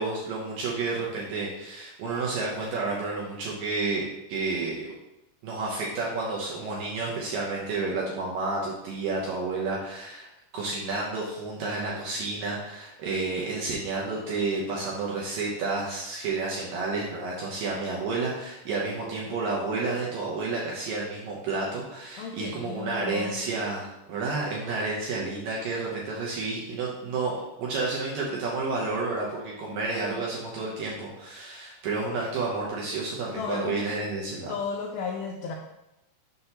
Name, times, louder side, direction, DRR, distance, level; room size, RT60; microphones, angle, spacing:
voice 1, 0.0-4.9 5.4-34.5, right 3 dB, 75° right, -4 dB, 2.1 m, -30 dB
voice 2, 22.2-23.4 29.7-29.8 30.1-30.2 33.3-33.8 34.5-35.5, left 5 dB, 90° left, 1 dB, 2.1 m, -34 dB
6.7 x 6.1 x 2.9 m, 0.90 s
omnidirectional pair, 4.9 m